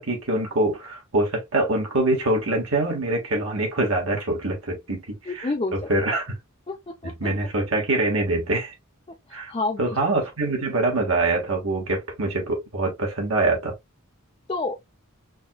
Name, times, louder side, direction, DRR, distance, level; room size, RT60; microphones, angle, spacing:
voice 1, 0.0-6.3 7.0-8.7 9.3-9.5 9.8-13.7, right 2 dB, 70° right, 1.6 m, -24 dB
voice 2, 5.3-5.7 6.1-6.2 6.7-7.3 9.3-10.0 14.5-14.7, left 3 dB, 25° left, 0.4 m, -29 dB
5.5 x 3.0 x 2.3 m
head